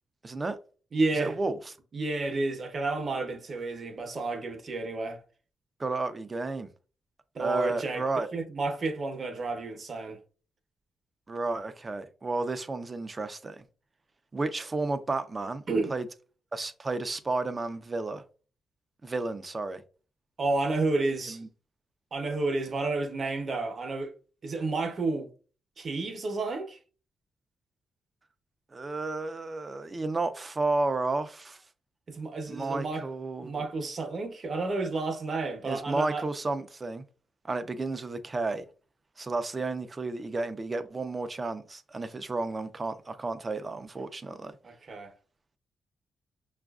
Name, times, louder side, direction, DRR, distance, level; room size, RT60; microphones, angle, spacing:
voice 1, 0.2-0.6 1.1-1.8 5.8-6.7 7.4-8.3 11.3-13.6 14.3-15.6 15.9-16.1 16.5-18.2 19.0-19.8 21.3-21.5 28.7-31.6 32.5-33.6 35.6-37.0 37.4-38.6 39.2-44.5, right 3 dB, 35° right, 0.5 m, -32 dB
voice 2, 0.9-1.3 1.9-5.2 7.3-8.0 8.3-10.2 15.7-15.9 20.4-21.4 22.1-24.1 24.4-25.3 25.8-26.8 32.1-33.1 33.4-36.2 44.6-45.1, right 3 dB, 50° right, 0.9 m, -31 dB
5.9 x 2.4 x 2.3 m
cardioid pair, 70°, 0 cm